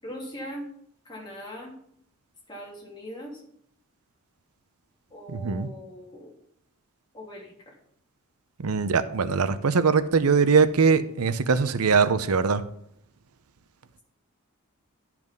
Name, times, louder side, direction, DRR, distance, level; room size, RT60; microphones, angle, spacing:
voice 1, 0.0-0.7 1.0-1.7 2.5-3.4 5.1-6.3 7.1-7.7, equal, 20° left, -4 dB, 3.1 m, -40 dB
voice 2, 5.3-5.7 8.6-12.6, right 5 dB, 90° right, 13 dB, 0.6 m, -22 dB
10.5 x 5.9 x 5.3 m, 0.69 s
head